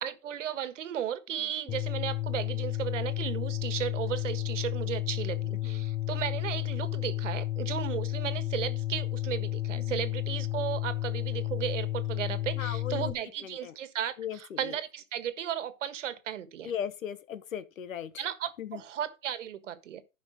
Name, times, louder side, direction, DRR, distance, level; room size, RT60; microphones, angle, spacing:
voice 1, 0.0-16.7 18.2-20.0, right 10 dB, 65° right, 1.6 m, -35 dB
sound 1, 1.7-13.1, left 16 dB, 15° left, 0.5 m, -32 dB
voice 2, 12.6-13.1 13.4-13.7 14.2-14.7 16.6-18.1 18.6-18.8, left 9 dB, 75° left, 1.3 m, -37 dB
11.5 x 5.3 x 5.1 m
hypercardioid pair, 150°, 40 cm